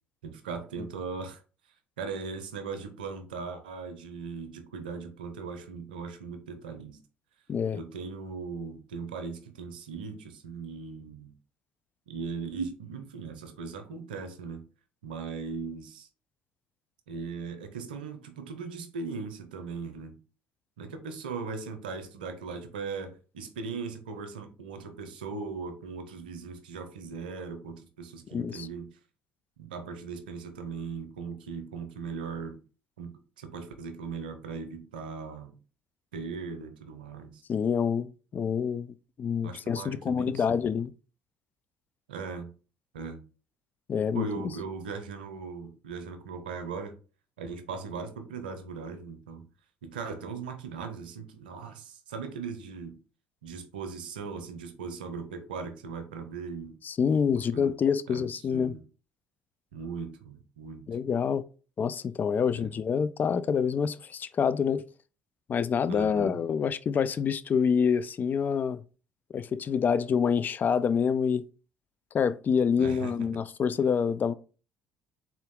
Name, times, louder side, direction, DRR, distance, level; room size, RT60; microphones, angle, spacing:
voice 1, 0.2-1.4 2.0-7.0 7.7-11.3 12.1-14.6 15.0-16.1 17.1-20.2 20.8-29.0 29.6-32.6 33.0-33.1 33.4-35.6 36.1-37.4 39.4-40.6 42.1-42.5 42.9-43.2 44.1-47.0 47.4-49.5 49.8-53.0 53.4-56.8 57.3-57.8 58.1-58.8 59.7-60.9 62.5-62.8 65.9-66.4 72.8-73.3, right 5 dB, 85° right, 0.6 m, -39 dB
voice 2, 7.5-7.8 28.3-28.7 37.5-40.9 43.9-44.3 56.8-58.7 60.9-61.4 61.8-64.8 65.5-68.8 69.3-71.4 72.1-74.3, left 6 dB, 40° left, 0.3 m, -27 dB
3.9 x 2.4 x 3.6 m
hypercardioid pair, 60°, 5 cm